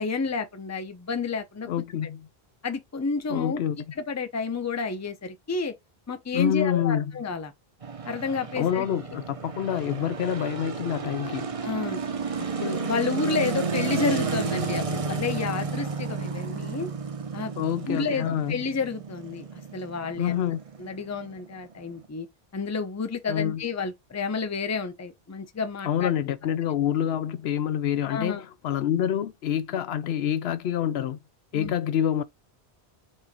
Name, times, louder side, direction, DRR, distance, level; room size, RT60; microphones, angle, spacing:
voice 1, 0.0-1.7 2.6-3.6 4.0-5.7 6.1-7.5 8.0-8.9 11.6-12.0 12.4-16.9 17.3-17.5 17.9-20.4 20.8-22.3 22.5-26.1 28.1-28.4 31.5-31.7, left 4 dB, 20° left, 0.6 m, -30 dB
voice 2, 1.7-2.3 3.3-3.8 6.3-7.1 8.6-11.5 17.6-18.6 20.2-20.6 23.3-23.7 25.8-31.2 31.5-32.2, left 10 dB, 75° left, 0.8 m, -27 dB
sound 1, 7.8-22.1, right 5 dB, 35° right, 0.7 m, -32 dB
4.6 x 2.6 x 4.2 m
omnidirectional pair, 1.1 m